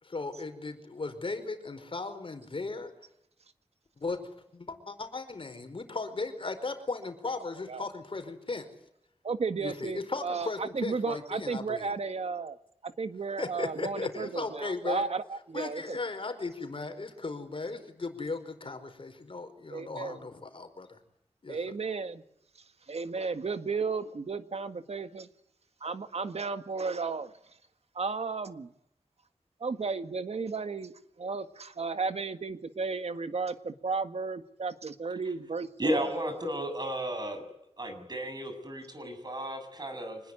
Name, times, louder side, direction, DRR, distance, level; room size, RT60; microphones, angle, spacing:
voice 1, 0.0-2.9 4.0-4.2 4.5-8.7 9.6-11.9 13.4-15.1 15.5-21.0 21.4-21.6, left 3 dB, 55° left, 7 dB, 4.8 m, -36 dB
voice 2, 9.2-12.6 12.8-16.0 19.7-20.2 21.5-22.2 22.9-25.3 25.8-27.3 28.0-28.7 29.6-30.9 31.2-36.1, right 4 dB, 75° right, 10 dB, 1.7 m, -34 dB
voice 3, 35.8-37.4 37.8-40.2, equal, 40° right, 7 dB, 7.6 m, -33 dB
25.5 x 20.5 x 9.8 m, 0.75 s
wide cardioid pair, 100°, 11 cm